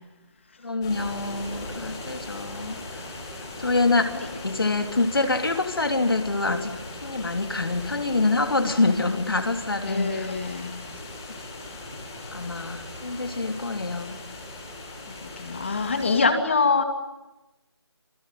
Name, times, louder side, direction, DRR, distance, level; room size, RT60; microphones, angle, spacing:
voice 1, 0.6-2.8 3.6-6.7 7.0-10.3 12.3-14.2, left 3 dB, 55° left, 6 dB, 3.3 m, -25 dB
sound 1, 0.8-16.2, left 2 dB, 10° left, 5.0 m, -39 dB
voice 2, 9.9-10.8 15.1-16.8, left 4 dB, 25° left, 6 dB, 2.7 m, -25 dB
28.5 x 22.0 x 9.4 m, 0.99 s
figure-of-eight pair, 175°, 14 cm